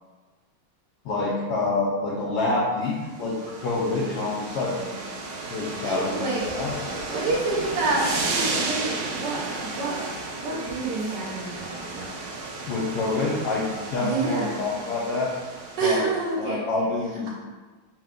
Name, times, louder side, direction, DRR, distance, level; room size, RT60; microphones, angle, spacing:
voice 1, 1.0-4.8 5.5-6.3 6.5-7.1 12.7-15.4 15.8-16.0 16.4-17.3, left 3 dB, 75° left, -5 dB, 0.9 m, -27 dB
sound 1, 3.0-16.3, right 3 dB, 85° right, 1.6 m, -34 dB
voice 2, 5.8-6.5 7.1-10.0 10.4-12.2 14.0-14.6 15.8-16.8, right 3 dB, 65° right, -3 dB, 1.2 m, -28 dB
sound 2, 6.3-10.1, equal, 45° right, 1.1 m, -39 dB
4.5 x 2.2 x 3.6 m, 1.3 s
omnidirectional pair, 2.2 m